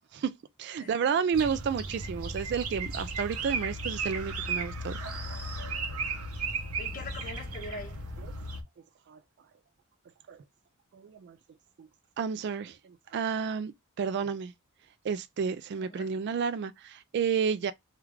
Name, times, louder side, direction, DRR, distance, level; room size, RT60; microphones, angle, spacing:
voice 1, 0.6-5.0 9.1-9.2 10.3-10.4 10.9-11.4 11.8-11.9 12.2-13.7 14.0-14.5 15.0-17.7, right 6 dB, 50° right, 0.3 m, -31 dB
sound 1, 1.3-8.6, right 3 dB, 75° right, 0.7 m, -35 dB
voice 2, 6.8-8.1 15.7-16.2, left 2 dB, 40° left, 1.2 m, -43 dB
3.1 x 2.4 x 3.2 m
head